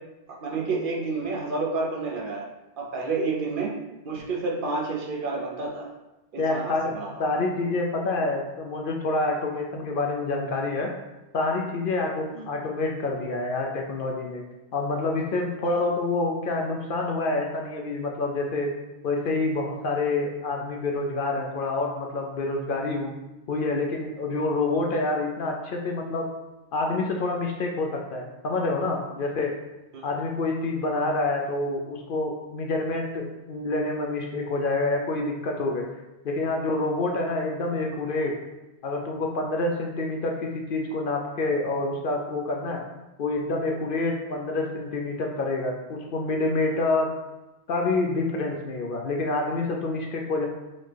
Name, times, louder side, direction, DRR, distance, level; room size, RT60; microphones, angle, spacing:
voice 1, 0.3-2.5 2.8-3.7 4.0-5.9 6.3-7.1 12.3-12.5 15.7-15.8 29.9-30.0, right 3 dB, 60° right, 0 dB, 0.7 m, -29 dB
voice 2, 6.4-6.9 7.2-10.9 11.3-14.4 14.7-18.7 19.0-23.1 23.5-26.3 26.7-29.5 30.0-35.9 36.2-38.3 38.8-42.8 43.2-47.1 47.7-50.5, left 2 dB, 60° left, 1 dB, 0.7 m, -27 dB
4.1 x 3.1 x 3.3 m, 1.0 s
omnidirectional pair, 1.1 m